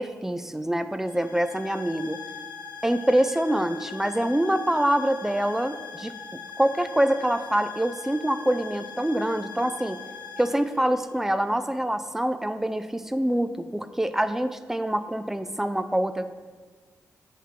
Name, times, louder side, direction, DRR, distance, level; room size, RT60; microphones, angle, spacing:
voice 1, 0.0-2.2 2.8-6.1 6.6-10.0 10.4-16.3, right 1 dB, 5° right, 11 dB, 0.5 m, -25 dB
sound 1, 1.0-11.6, left 6 dB, 90° left, 1.0 m, -41 dB
8.3 x 3.7 x 5.8 m, 1.4 s
cardioid pair, 55°, 6 cm